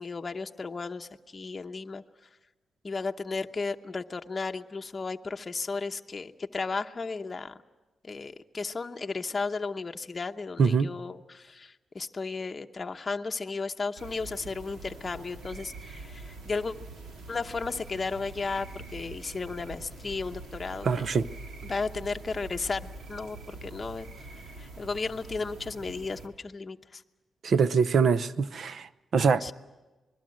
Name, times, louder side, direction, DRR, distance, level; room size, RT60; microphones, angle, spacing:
voice 1, 0.0-2.0 2.8-7.5 8.0-16.7 17.3-21.1 21.6-24.1 24.6-27.0 29.4-29.5, left 4 dB, 30° left, 0.9 m, -34 dB
voice 2, 10.6-10.9 20.8-21.3 27.4-29.5, right 5 dB, 55° right, 0.7 m, -24 dB
sound 1, 14.0-26.3, right 3 dB, 75° right, 3.1 m, -44 dB
26.5 x 21.5 x 7.7 m
wide cardioid pair, 135°, 0 cm